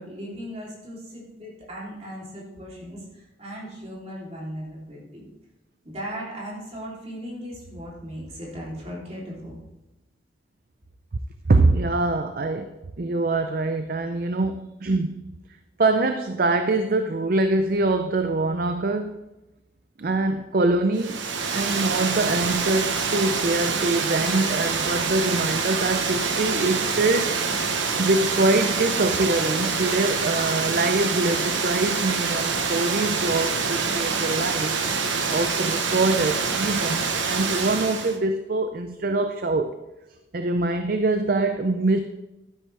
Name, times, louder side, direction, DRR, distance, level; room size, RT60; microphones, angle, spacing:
voice 1, 0.0-5.3 5.8-9.6, equal, 35° right, -4 dB, 3.2 m, -37 dB
voice 2, 11.5-12.7 13.0-15.2 15.8-19.2 20.0-21.3 21.5-27.4 28.0-34.8 35.3-39.7 40.3-42.0, right 2 dB, 50° right, 8 dB, 0.5 m, -24 dB
Water, 21.0-38.2, right 5 dB, 80° right, 1.1 m, -26 dB
12.0 x 10.0 x 3.4 m, 1.0 s
head